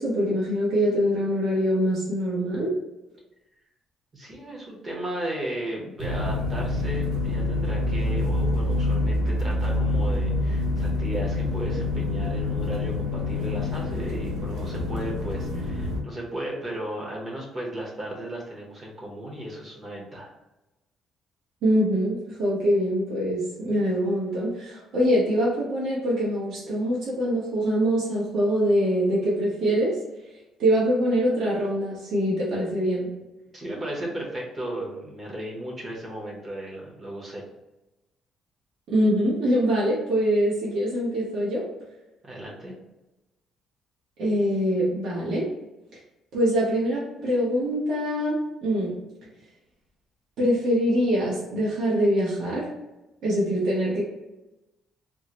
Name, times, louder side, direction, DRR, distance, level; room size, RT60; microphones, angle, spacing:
voice 1, 0.0-2.7 21.6-30.0 30.6-33.1 38.9-41.6 44.2-45.5 46.3-48.9 50.4-52.7 53.2-54.0, equal, 60° right, -7 dB, 1.0 m, -24 dB
voice 2, 4.1-20.3 33.5-37.4 42.2-42.7, right 1 dB, 25° right, -2 dB, 0.8 m, -35 dB
sound 1, 6.0-16.0, left 2 dB, 85° right, 0.7 m, -26 dB
3.6 x 2.0 x 2.9 m, 1.0 s
cardioid pair, 175°, 0 cm